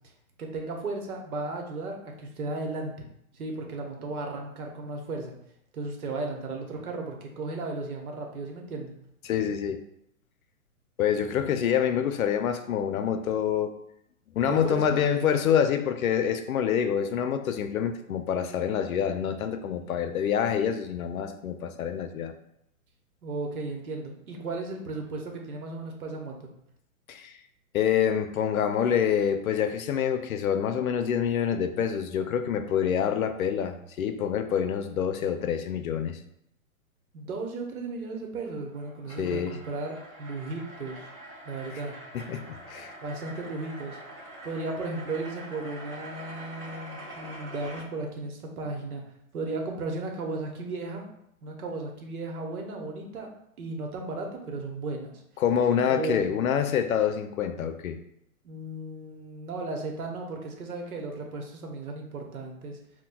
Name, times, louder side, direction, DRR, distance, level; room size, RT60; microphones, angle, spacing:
voice 1, 0.4-2.9 3.3-5.3 5.7-9.0 14.4-15.3 23.2-26.4 37.1-41.1 41.4-41.9 43.0-44.0 44.4-49.0 49.3-51.1 51.4-53.3 53.6-55.1 55.9-56.4 58.4-62.8, right 3 dB, 85° right, 1 dB, 1.0 m, -35 dB
voice 2, 9.2-9.8 11.0-13.7 14.3-22.3 27.1-27.4 27.7-36.2 39.2-39.6 41.7-41.8 42.1-42.9 55.4-58.0, left 8 dB, 75° left, 8 dB, 0.6 m, -26 dB
sound 1, 38.3-47.8, right 1 dB, 15° right, 1.4 m, -44 dB
5.9 x 2.2 x 2.2 m, 0.76 s
hypercardioid pair, 165°, 43 cm